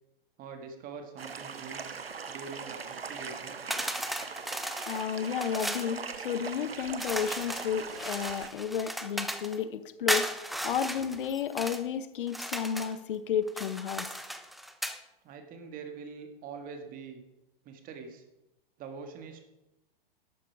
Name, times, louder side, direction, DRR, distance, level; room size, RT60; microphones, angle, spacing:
voice 1, 0.4-2.0 2.3-3.6 15.2-17.2 17.6-18.2 18.8-19.4, right 5 dB, 30° right, 6 dB, 1.8 m, -44 dB
sound 1, 1.2-8.5, right 5 dB, 85° right, 0.8 m, -41 dB
sound 2, 3.7-5.9 7.0-9.6 10.1-11.8 12.3-13.0 13.5-15.0, equal, ahead, 0.4 m, -35 dB
voice 2, 4.9-10.3 10.6-14.1, left 8 dB, 60° left, 13 dB, 1.0 m, -32 dB
12.0 x 8.4 x 4.8 m, 0.94 s
figure-of-eight pair, 105°, 29 cm